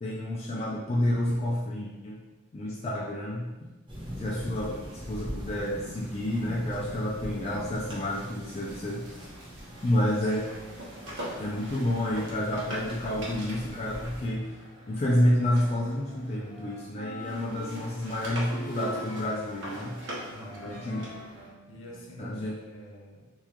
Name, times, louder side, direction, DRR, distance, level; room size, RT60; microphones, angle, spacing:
voice 1, 0.0-2.2 2.5-3.5 4.2-4.8 5.1-9.1 9.8-10.5 11.4-14.5 14.9-20.0 20.6-21.0 22.2-22.5, left 1 dB, 30° left, -4 dB, 0.3 m, -29 dB
sound 1, 3.9-14.3, equal, 25° right, 0.7 m, -42 dB
sound 2, 6.3-16.9 17.2-21.5, equal, 60° right, 0.8 m, -44 dB
Wind instrument woodwind instrument, 15.4-22.4, right 1 dB, 45° left, 0.9 m, -46 dB
voice 2, 20.2-21.1 21.7-23.3, equal, 70° left, -2 dB, 0.7 m, -46 dB
3.5 x 3.0 x 2.2 m, 1.1 s
head